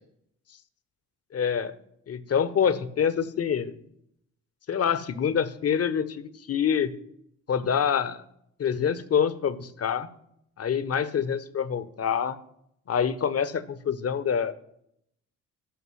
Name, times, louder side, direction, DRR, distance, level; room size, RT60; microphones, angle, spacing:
voice 1, 1.3-1.7 2.1-3.7 4.7-6.9 7.5-8.2 8.6-10.1 10.6-12.4 12.9-14.5, left 7 dB, 35° left, 15 dB, 0.8 m, -26 dB
12.5 x 5.4 x 3.2 m, 0.74 s
hypercardioid pair, 40°, 44 cm